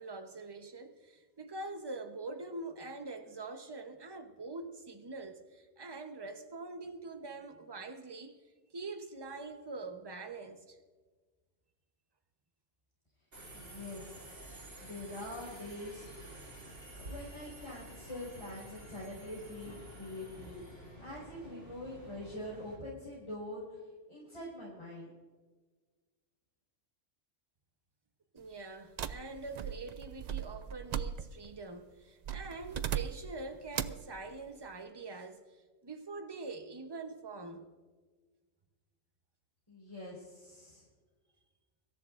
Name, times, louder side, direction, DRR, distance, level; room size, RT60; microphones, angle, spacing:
voice 1, 0.0-8.4 8.7-10.8 28.3-35.5 35.8-37.6, right 3 dB, 20° right, 0.9 m, -44 dB
Subway metro underground, 13.3-22.8, right 1 dB, 70° right, 3.7 m, -50 dB
voice 2, 13.5-16.1 17.0-20.6 21.0-23.8 24.1-25.1 39.7-40.8, left 1 dB, 25° left, 5.2 m, -44 dB
sound 1, 29.0-31.6 32.2-33.4 33.7-34.1, right 9 dB, 90° right, 0.3 m, -38 dB
24.5 x 13.5 x 2.6 m
omnidirectional pair, 1.3 m